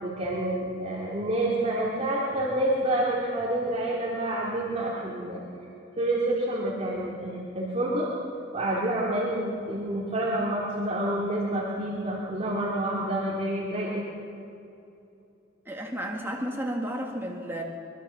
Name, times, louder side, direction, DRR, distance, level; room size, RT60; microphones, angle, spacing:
voice 1, 0.0-5.4 6.0-8.1 8.5-14.1, right 1 dB, 35° right, -5 dB, 2.9 m, -28 dB
voice 2, 15.7-17.6, right 1 dB, 10° right, 0 dB, 1.9 m, -32 dB
23.5 x 23.0 x 6.0 m, 2.8 s
head